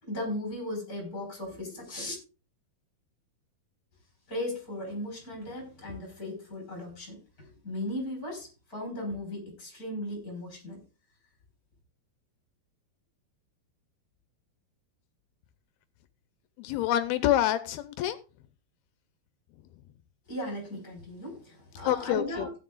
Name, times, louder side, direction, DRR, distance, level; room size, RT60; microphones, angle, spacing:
voice 1, 0.0-2.2 4.3-10.8 20.3-22.5, left 1 dB, 20° left, 5.1 m, -37 dB
voice 2, 16.6-18.2 21.9-22.5, left 13 dB, 80° left, 2.4 m, -27 dB
16.5 x 9.5 x 2.4 m
omnidirectional pair, 4.6 m